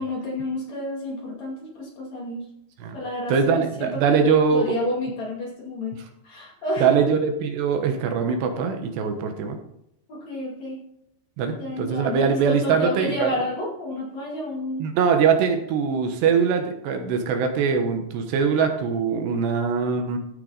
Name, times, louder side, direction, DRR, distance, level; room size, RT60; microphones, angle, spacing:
voice 1, 0.0-2.4 2.9-6.0 6.2-7.1 10.1-10.8 11.5-14.9, left 1 dB, 45° left, -2 dB, 3.1 m, -30 dB
voice 2, 3.3-4.8 6.8-9.6 11.4-13.3 14.8-20.2, right 6 dB, 80° right, 5 dB, 3.4 m, -22 dB
15.0 x 6.8 x 4.1 m, 0.78 s
omnidirectional pair, 4.9 m